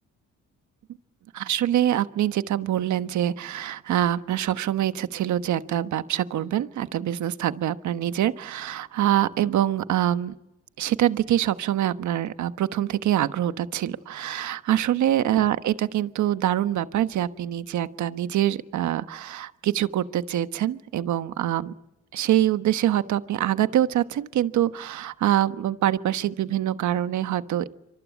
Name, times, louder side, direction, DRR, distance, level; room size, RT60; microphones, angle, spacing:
voice 1, 1.3-10.3 10.8-21.7 22.1-27.7, right 12 dB, 70° right, 11 dB, 1.3 m, -25 dB
27.5 x 24.5 x 8.5 m, 0.90 s
cardioid pair, 90°, 30 cm